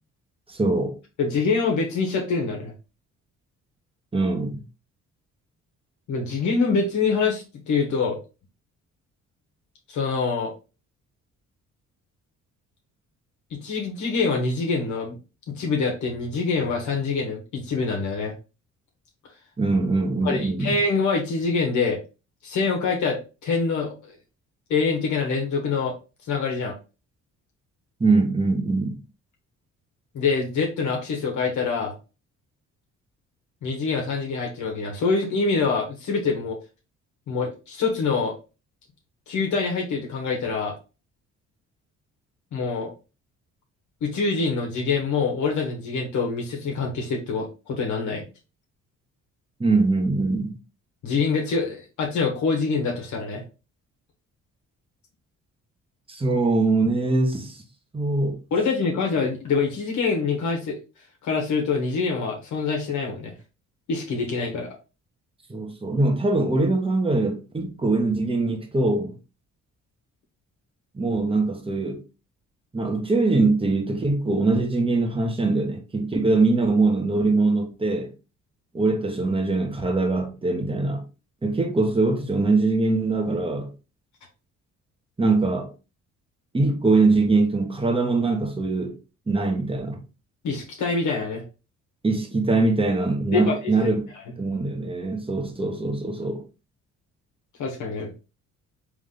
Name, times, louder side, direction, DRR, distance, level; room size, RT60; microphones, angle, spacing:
voice 1, 0.5-0.9 4.1-4.6 19.6-20.8 28.0-29.0 49.6-50.5 56.1-57.6 57.9-58.4 65.5-69.1 70.9-72.0 72.7-78.1 78.7-81.0 81.4-83.7 85.2-85.7 86.5-89.0 89.3-90.0 92.0-94.1 94.4-96.4, right 3 dB, 20° right, 1.2 m, -22 dB
voice 2, 1.2-2.7 6.1-8.2 9.9-10.5 13.5-15.2 15.5-18.3 20.2-22.0 22.4-23.9 24.7-25.9 26.3-26.7 30.1-31.9 33.6-36.6 37.3-38.3 39.3-40.7 42.5-42.9 44.0-48.2 51.0-53.4 58.5-60.8 61.2-63.3 63.9-64.7 90.4-91.4 93.3-93.7 97.6-98.1, left 4 dB, 75° left, 1.4 m, -25 dB
3.6 x 3.5 x 3.8 m
cardioid pair, 90°, 30 cm